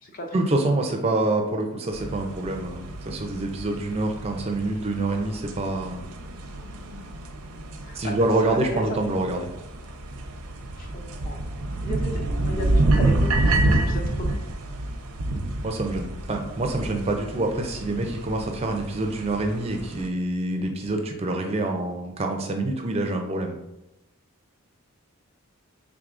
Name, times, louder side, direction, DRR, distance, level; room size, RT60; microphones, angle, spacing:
voice 1, 0.3-6.1 7.9-9.5 15.6-23.6, right 2 dB, 25° right, 3 dB, 0.4 m, -26 dB
sound 1, 1.9-20.1, right 2 dB, 90° right, 0.6 m, -28 dB
voice 2, 7.8-8.1 8.5-9.0 10.8-11.4 11.7-14.3, equal, 40° left, 2 dB, 0.5 m, -35 dB
4.7 x 3.5 x 2.5 m, 0.94 s
head